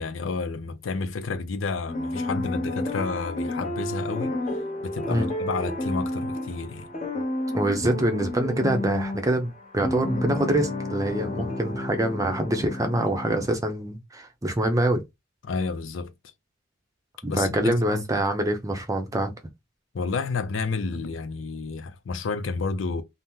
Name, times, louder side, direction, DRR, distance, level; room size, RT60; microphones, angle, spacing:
voice 1, 0.0-4.3 4.8-6.9 11.3-11.5 15.4-16.1 17.3-18.2 19.9-23.0, left 4 dB, 85° left, 0.5 m, -30 dB
sound 1, 1.9-13.5, left 1 dB, 40° left, 0.8 m, -31 dB
voice 2, 7.5-15.0 17.2-19.3, right 1 dB, 15° right, 0.5 m, -25 dB
2.8 x 2.0 x 3.6 m
head